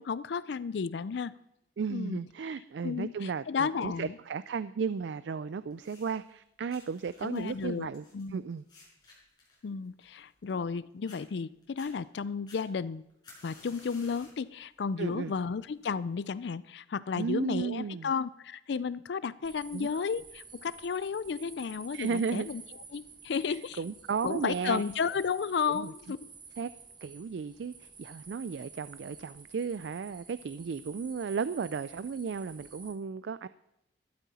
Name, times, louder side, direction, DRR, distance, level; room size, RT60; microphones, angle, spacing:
voice 1, 0.0-1.3 1.9-2.2 2.8-4.2 7.2-7.9 8.1-8.4 9.6-13.0 13.4-22.6 22.9-23.8 24.2-26.3, left 5 dB, 65° left, 18 dB, 0.4 m, -33 dB
voice 2, 1.8-8.0 8.3-8.6 15.0-15.3 17.2-18.1 19.7-19.9 21.9-22.5 23.5-24.8 25.7-25.9 26.6-26.7 27.0-33.5, right 5 dB, 70° right, 15 dB, 0.4 m, -34 dB
sound 1, 5.7-6.3 6.7-10.7 11.1-11.2 11.6-11.9 12.5-14.4 14.9-15.2 16.0-16.1, left 3 dB, 25° left, 5.3 m, -56 dB
sound 2, 19.4-32.9, right 5 dB, 25° right, 1.5 m, -51 dB
13.0 x 12.0 x 4.2 m, 0.86 s
head